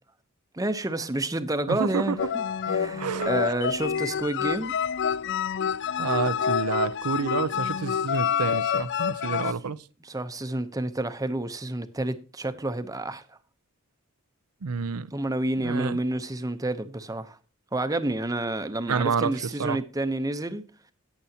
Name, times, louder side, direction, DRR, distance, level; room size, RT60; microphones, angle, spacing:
voice 1, 0.5-4.7 9.6-9.7 10.0-13.4 15.1-17.4 17.7-20.6, right 1 dB, 15° right, 0.7 m, -29 dB
voice 2, 1.7-2.2 3.0-3.3 6.0-9.8 14.6-15.1 15.6-16.0 18.9-19.8, right 5 dB, 85° right, 0.6 m, -29 dB
sound 1, 2.2-9.5, left 7 dB, 50° left, 0.4 m, -27 dB
17.0 x 7.0 x 2.8 m
head